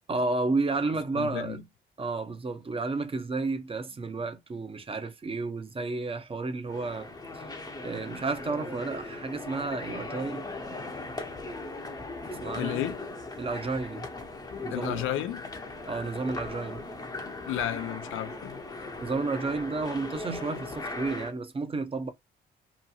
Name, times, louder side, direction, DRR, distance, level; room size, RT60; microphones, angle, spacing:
voice 1, 0.1-1.6 2.0-7.1 7.3-7.5 7.8-10.5 12.4-12.9 13.4-14.1 14.6-15.1 15.8-16.8 19.0-22.1, right 3 dB, 30° right, 0.7 m, -32 dB
voice 2, 1.1-1.6 12.5-13.0 14.7-15.5 17.4-18.6, left 12 dB, 90° left, 0.5 m, -32 dB
sound 1, 6.7-21.3, left 2 dB, 20° left, 0.8 m, -39 dB
2.9 x 2.5 x 2.3 m
cardioid pair, 90°, 20 cm